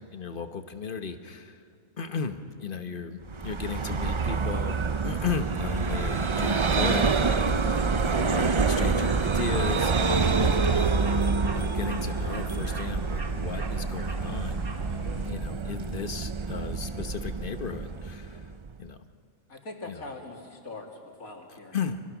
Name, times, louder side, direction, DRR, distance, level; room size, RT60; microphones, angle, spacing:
voice 1, 0.0-1.6 2.0-9.9 10.2-14.6 15.2-18.5 18.8-19.0 19.9-20.0 21.7-22.0, left 6 dB, 40° left, 8 dB, 1.2 m, -35 dB
Vehicle, 3.3-18.7, right 4 dB, 45° right, 0.3 m, -27 dB
sound 1, 5.8-15.3, right 2 dB, 65° right, 2.3 m, -39 dB
voice 2, 19.5-21.8, left 2 dB, 80° left, 1 dB, 3.2 m, -42 dB
29.5 x 25.5 x 6.1 m, 2.3 s
omnidirectional pair, 1.4 m